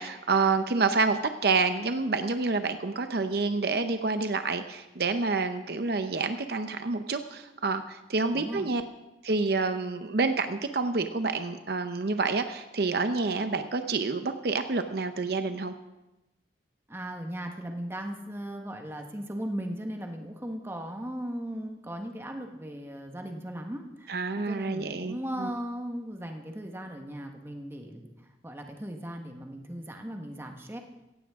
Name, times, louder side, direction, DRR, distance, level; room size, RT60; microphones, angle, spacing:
voice 1, 0.0-8.8 9.2-15.7 24.1-25.5, right 4 dB, 60° right, 8 dB, 0.7 m, -28 dB
voice 2, 8.3-8.7 16.9-28.1 28.4-30.8, equal, 15° right, 3 dB, 1.3 m, -37 dB
17.0 x 15.5 x 3.6 m, 0.98 s
head